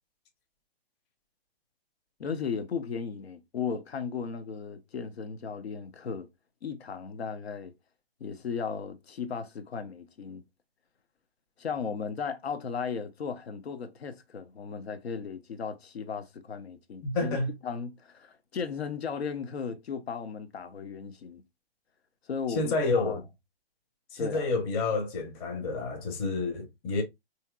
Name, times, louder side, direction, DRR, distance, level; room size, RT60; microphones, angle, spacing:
voice 1, 2.2-6.3 6.6-7.7 8.2-10.4 11.6-17.4 17.6-21.4 22.3-23.2 24.2-24.5, left 6 dB, 80° left, 0.7 m, -36 dB
voice 2, 17.0-17.5 22.5-23.2 24.1-27.0, left 3 dB, 25° left, 0.7 m, -29 dB
2.8 x 2.8 x 2.3 m
hypercardioid pair, 130°, 31 cm